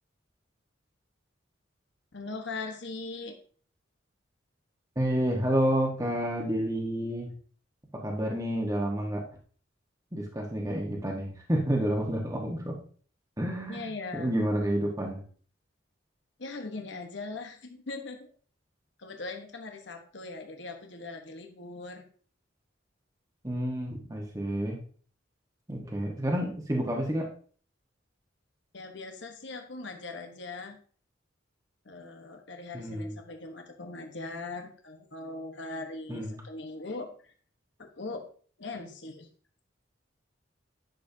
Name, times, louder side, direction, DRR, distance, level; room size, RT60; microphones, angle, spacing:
voice 1, 2.1-3.3 13.7-14.3 16.4-18.3 19.0-22.0 28.7-30.8 31.8-37.3 37.8-38.2 38.6-39.3, left 3 dB, 65° left, 4 dB, 1.2 m, -40 dB
voice 2, 4.9-7.3 7.9-9.2 10.1-12.8 13.4-13.9 14.1-15.2 23.4-24.8 25.7-27.3 32.7-33.1 36.1-36.4, right 1 dB, 20° right, 0 dB, 1.3 m, -29 dB
10.5 x 6.7 x 2.8 m, 0.43 s
head